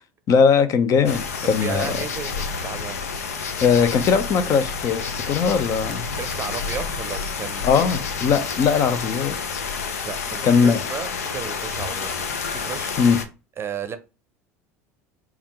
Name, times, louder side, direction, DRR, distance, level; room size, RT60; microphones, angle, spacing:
voice 1, 0.3-2.0 3.6-6.0 7.6-9.6 10.4-10.8 13.0-13.2, left 6 dB, 45° left, 0.7 m, -20 dB
sound 1, 1.0-13.2, left 5 dB, 80° left, 0.6 m, -29 dB
voice 2, 1.6-3.0 5.5-5.6 6.1-7.9 10.0-12.9 13.6-14.0, right 7 dB, 30° right, 0.6 m, -34 dB
3.5 x 2.4 x 4.3 m
hypercardioid pair, 75°, 8 cm